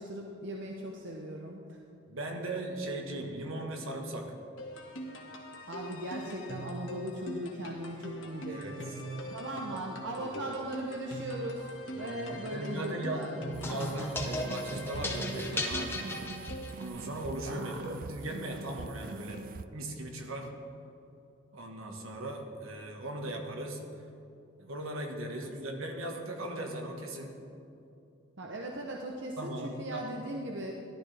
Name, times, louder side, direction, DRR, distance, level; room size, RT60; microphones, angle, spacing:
voice 1, 0.0-1.8 5.7-13.6 17.4-17.8 28.4-30.7, right 1 dB, 55° right, 0 dB, 0.8 m, -39 dB
voice 2, 2.1-4.3 8.5-8.7 9.5-9.8 10.2-10.5 12.0-13.3 13.6-16.1 16.8-19.4 19.7-20.5 21.5-23.8 24.6-27.4 29.4-30.1, right 1 dB, 75° right, 2 dB, 1.5 m, -38 dB
sound 1, 4.6-16.9, right 1 dB, 65° left, 1.6 m, -43 dB
sound 2, 13.5-19.6, right 4 dB, 40° right, 0.3 m, -44 dB
sound 3, 13.6-17.0, left 2 dB, 10° left, 0.8 m, -36 dB
14.5 x 11.5 x 3.4 m, 2.7 s
head